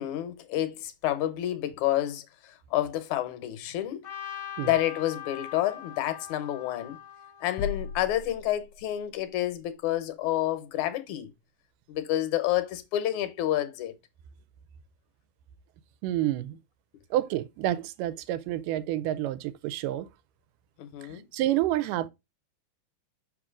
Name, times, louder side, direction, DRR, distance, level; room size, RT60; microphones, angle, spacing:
voice 1, 0.0-4.0 4.6-7.0 7.4-11.3 11.9-13.9 20.8-21.2, left 13 dB, 70° left, 2.2 m, -29 dB
Trumpet, 4.0-8.2, left 9 dB, 50° left, 1.3 m, -42 dB
sound 1, 7.6-9.2, left 6 dB, 85° left, 2.2 m, -37 dB
voice 2, 16.0-16.6 17.1-20.1 21.1-22.1, right 13 dB, 85° right, 2.2 m, -29 dB
6.0 x 5.0 x 3.7 m
omnidirectional pair, 3.7 m